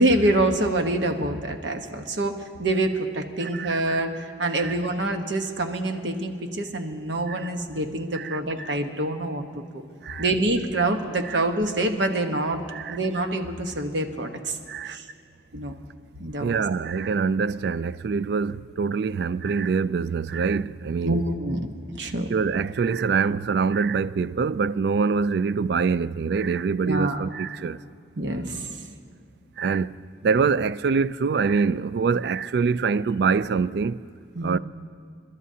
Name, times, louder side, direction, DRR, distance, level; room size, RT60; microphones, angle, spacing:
voice 1, 0.0-9.8 10.2-12.6 12.9-14.6 14.8-15.1 15.5-15.7 16.2-16.6 21.0-21.6 21.9-22.3 26.8-27.2 28.2-28.7 34.3-34.6, right 1 dB, 80° right, 1.1 m, -26 dB
voice 2, 3.4-3.7 4.6-4.7 7.3-7.4 8.1-8.4 10.0-10.3 11.2-11.4 12.7-13.0 14.7-15.0 16.4-21.2 22.3-27.8 29.6-34.0 34.4-34.6, right 5 dB, 60° right, 0.3 m, -25 dB
29.5 x 12.5 x 2.8 m
head